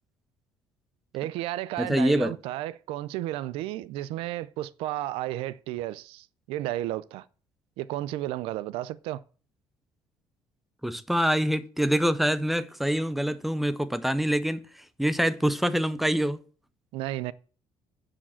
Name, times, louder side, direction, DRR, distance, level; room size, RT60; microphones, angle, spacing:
voice 1, 1.1-7.2 7.8-9.2 16.9-17.3, right 14 dB, 85° right, 0.5 m, -33 dB
voice 2, 1.8-2.3 10.8-16.4, equal, ahead, 0.5 m, -25 dB
9.9 x 4.9 x 7.4 m
cardioid pair, 175°, 9 cm